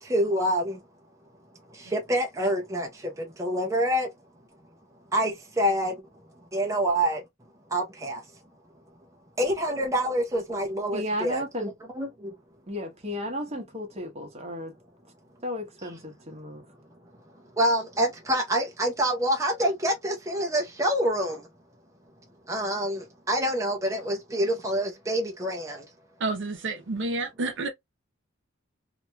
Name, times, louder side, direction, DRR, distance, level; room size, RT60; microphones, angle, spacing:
voice 1, 0.0-0.8 1.7-4.1 5.1-6.0 6.5-7.2 7.7-8.2 9.4-12.3 17.6-21.5 22.5-25.8, equal, 15° right, 0.7 m, -27 dB
voice 2, 10.9-11.7 12.7-14.7 15.4-16.6, left 1 dB, 30° right, 1.1 m, -33 dB
voice 3, 26.2-27.7, right 3 dB, 60° right, 0.7 m, -29 dB
2.8 x 2.8 x 2.2 m
head